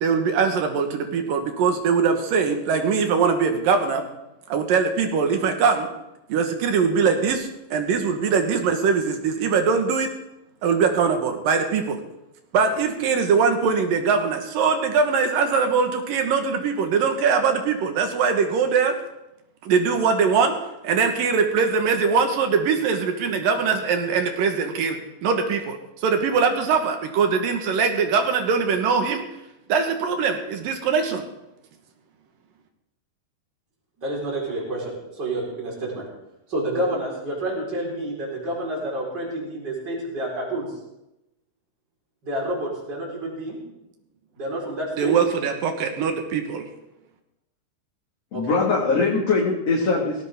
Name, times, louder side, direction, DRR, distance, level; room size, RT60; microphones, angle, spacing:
voice 1, 0.0-4.0 4.5-5.9 6.3-10.1 10.6-12.0 12.5-18.9 19.6-20.5 20.8-29.2 29.7-31.3 45.0-46.7, right 5 dB, 70° right, 5 dB, 3.0 m, -22 dB
voice 2, 34.0-36.0 36.5-40.7 42.2-43.6 44.4-45.2 48.3-48.5, right 1 dB, 25° right, -4 dB, 5.2 m, -29 dB
voice 3, 48.3-50.2, left 4 dB, 45° left, -4 dB, 2.9 m, -21 dB
18.5 x 16.5 x 3.7 m, 0.91 s
omnidirectional pair, 4.4 m